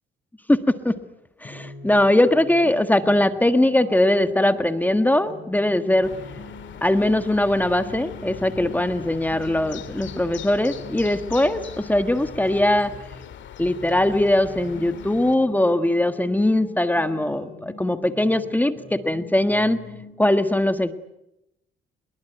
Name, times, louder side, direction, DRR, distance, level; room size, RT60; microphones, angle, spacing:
voice 1, 0.5-0.9 1.4-6.1 6.8-12.9 13.6-19.8 20.2-20.9, left 1 dB, 10° left, 9 dB, 1.5 m, -21 dB
sound 1, 1.4-13.3 13.6-20.1, left 2 dB, 35° left, 7.9 m, -42 dB
sound 2, 6.0-15.4, left 10 dB, 70° left, 2.1 m, -41 dB
25.0 x 22.5 x 9.2 m, 0.87 s
cardioid pair, 90°, 20 cm